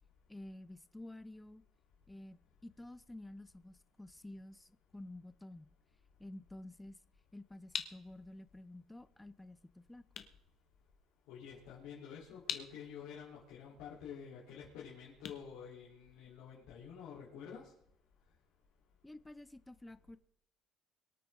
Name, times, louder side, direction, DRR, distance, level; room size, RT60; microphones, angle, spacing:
voice 1, 0.3-1.6 2.1-5.7 6.2-7.0 7.3-10.0 19.0-20.2, left 1 dB, 10° left, 15 dB, 0.5 m, -51 dB
sound 1, 7.1-16.5, left 9 dB, 55° left, 1.3 m, -48 dB
voice 2, 11.3-17.7, left 7 dB, 90° left, -6 dB, 3.9 m, -49 dB
23.5 x 8.9 x 3.9 m, 0.76 s
cardioid pair, 130°, 0 cm